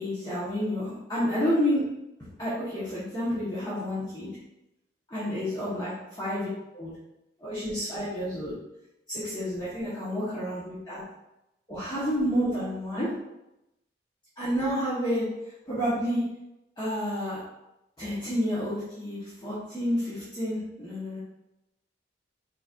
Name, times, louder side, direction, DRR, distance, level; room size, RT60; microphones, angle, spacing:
voice 1, 0.0-1.8 2.2-4.3 5.1-5.9 6.2-6.5 6.7-6.9 7.4-8.5 9.1-11.0 11.7-13.1 14.4-15.2 15.7-16.2 16.8-17.4 18.0-21.2, equal, 25° left, -11 dB, 1.1 m, -29 dB
4.9 x 4.1 x 2.4 m, 0.90 s
head